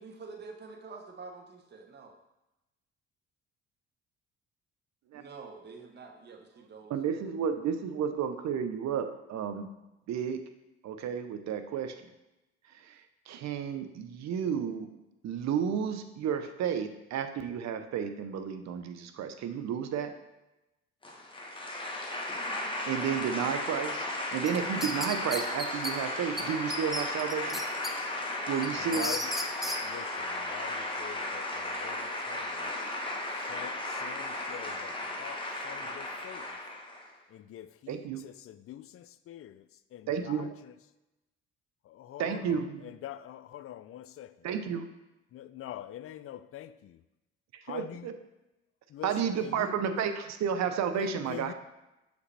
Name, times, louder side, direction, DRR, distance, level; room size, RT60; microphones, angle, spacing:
voice 1, 0.0-2.1 5.1-7.3, right 4 dB, 35° right, 0.9 m, -47 dB
voice 2, 6.9-9.7 10.1-10.5 10.8-11.9 12.9-13.0 13.3-14.9 15.2-20.1 22.9-27.6 28.5-29.1 37.9-38.2 40.1-40.5 42.2-42.9 44.4-44.9 47.7-48.1 49.0-51.5, right 7 dB, 60° right, 0.7 m, -32 dB
sound 1, 21.0-37.1, left 2 dB, 15° left, 1.1 m, -35 dB
sound 2, 24.5-25.9 26.4-26.5 26.7-27.9 28.3-29.8, equal, ahead, 0.6 m, -34 dB
voice 3, 28.8-32.9 33.3-36.6 37.3-40.7 42.0-44.5 45.3-47.0 47.6-48.1 48.9-50.1 51.0-51.5, left 12 dB, 50° left, 0.4 m, -45 dB
6.4 x 5.1 x 3.3 m
supercardioid pair, 65°, 30 cm